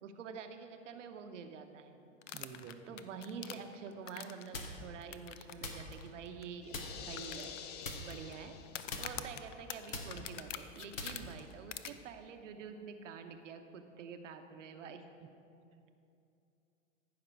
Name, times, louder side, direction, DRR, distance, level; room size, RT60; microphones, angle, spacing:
voice 1, 0.0-2.0 2.9-7.5 7.9-8.6 9.0-15.0, right 6 dB, 70° right, 7 dB, 1.0 m, -47 dB
sound 1, 2.2-4.6 5.1-5.5 5.8-5.9 6.4-6.5 7.2-7.9 8.7-11.2 11.7-11.9, left 11 dB, 65° left, 0.7 m, -44 dB
voice 2, 2.3-3.0 15.7-15.8, right 6 dB, 15° right, 6 dB, 0.3 m, -50 dB
sound 2, 4.5-5.0 5.6-6.4 6.7-7.2 7.8-8.6 8.9-11.7, left 2 dB, 85° left, 1.4 m, -44 dB
sound 3, 6.6-9.1, left 8 dB, 25° left, 0.6 m, -48 dB
14.5 x 5.8 x 4.6 m, 2.6 s
hypercardioid pair, 105°, 39 cm